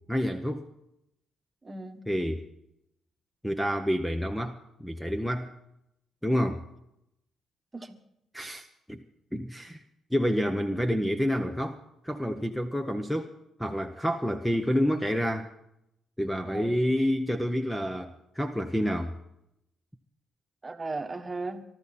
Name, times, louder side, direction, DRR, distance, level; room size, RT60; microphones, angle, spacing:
voice 1, 0.1-0.7 2.1-2.5 3.4-5.5 6.2-6.6 8.3-9.0 9.3-9.8 10.1-13.3 13.6-15.5 16.2-19.1, equal, 5° left, 8 dB, 0.8 m, -28 dB
voice 2, 1.6-2.0 7.7-8.0 16.4-16.8 20.6-21.6, right 3 dB, 20° right, 7 dB, 1.4 m, -36 dB
23.0 x 12.5 x 4.2 m, 0.81 s
cardioid pair, 90°, 0 cm